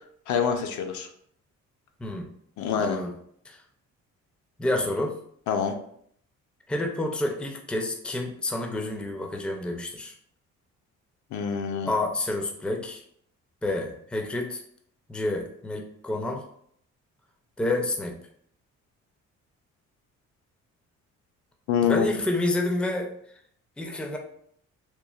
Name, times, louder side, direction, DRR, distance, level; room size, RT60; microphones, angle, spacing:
voice 1, 0.3-1.1 2.6-3.0 5.5-5.7 11.3-11.9 21.7-22.2, left 7 dB, 70° left, 4 dB, 0.5 m, -26 dB
voice 2, 2.8-3.1 3.5-3.6 4.6-5.2 6.7-10.1 11.9-13.0 13.6-14.6 15.1-16.4 17.6-18.2 21.8-23.1 23.8-24.2, left 2 dB, 5° left, 1 dB, 0.4 m, -29 dB
3.0 x 2.2 x 2.3 m, 0.66 s
cardioid pair, 90°, 30 cm